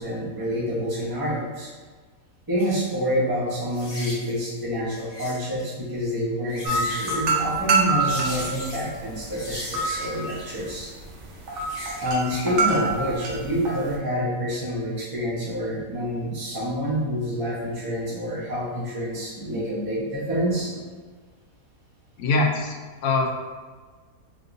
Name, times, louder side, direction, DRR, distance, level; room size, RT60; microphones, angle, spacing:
voice 1, 0.0-1.7 2.5-10.9 12.0-20.7, equal, 20° right, -8 dB, 0.6 m, -27 dB
sound 1, 2.6-2.8 3.7-4.3 5.0-5.6 6.3-7.2 8.0-9.0 9.3-10.7 11.4-12.5 12.8-12.9, left 1 dB, 45° left, 1.1 m, -37 dB
sound 2, 6.6-14.0, right 4 dB, 60° right, 0.8 m, -26 dB
voice 2, 22.2-22.7 23.0-23.3, left 3 dB, 70° left, 0 dB, 0.7 m, -22 dB
3.5 x 2.6 x 2.6 m, 1.4 s
omnidirectional pair, 1.7 m